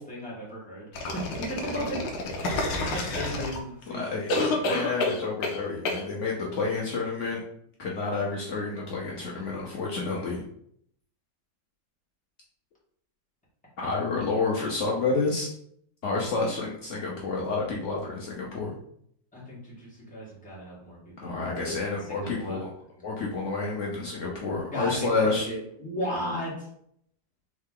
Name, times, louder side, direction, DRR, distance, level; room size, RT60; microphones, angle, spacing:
voice 1, 0.0-2.0 2.4-4.1 4.5-4.6 19.3-22.6 24.7-26.7, equal, 5° left, -7 dB, 1.4 m, -36 dB
sound 1, 0.9-3.8 4.3-5.6 5.8-6.0, left 2 dB, 65° left, 1.1 m, -29 dB
voice 2, 3.9-7.4 7.8-10.4 13.8-15.5 16.0-18.7 21.2-22.7 23.0-25.5, left 3 dB, 85° left, -3 dB, 0.6 m, -29 dB
3.8 x 3.2 x 3.7 m, 0.68 s
omnidirectional pair, 2.3 m